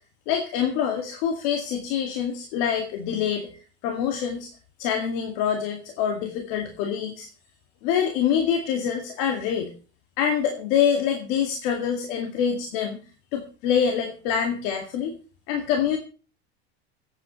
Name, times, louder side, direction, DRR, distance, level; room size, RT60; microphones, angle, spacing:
voice 1, 0.3-4.5 4.8-7.3 7.8-9.7 10.2-13.0 13.3-15.1 15.5-16.0, left 8 dB, 65° left, 3 dB, 2.1 m, -25 dB
25.0 x 8.9 x 3.1 m, 0.37 s
supercardioid pair, 125°, 31 cm